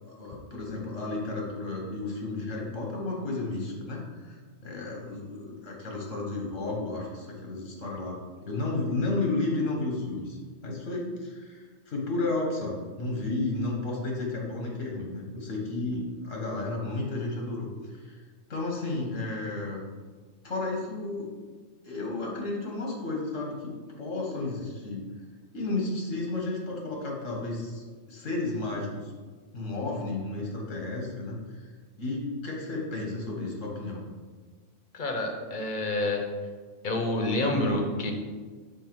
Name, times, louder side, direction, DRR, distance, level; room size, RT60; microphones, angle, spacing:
voice 1, 0.1-8.2 8.4-18.2 18.5-19.9 20.4-21.3 21.8-25.0 25.5-29.1 29.5-31.7 32.0-34.0, left 2 dB, 85° left, -1 dB, 1.7 m, -32 dB
voice 2, 34.9-36.2 36.8-38.1, left 2 dB, 45° left, 3 dB, 1.0 m, -28 dB
5.5 x 4.7 x 4.6 m, 1.5 s
omnidirectional pair, 1.3 m